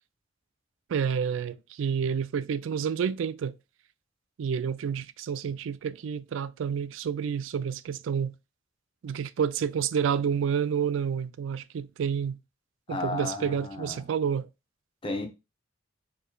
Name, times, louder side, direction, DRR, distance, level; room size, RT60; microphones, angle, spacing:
voice 1, 0.9-3.5 4.4-8.3 9.0-12.4 12.9-14.5, right 7 dB, 80° right, 0.3 m, -29 dB
voice 2, 12.9-14.0 15.0-15.3, left 2 dB, 30° left, 0.9 m, -33 dB
6.5 x 3.0 x 2.3 m
head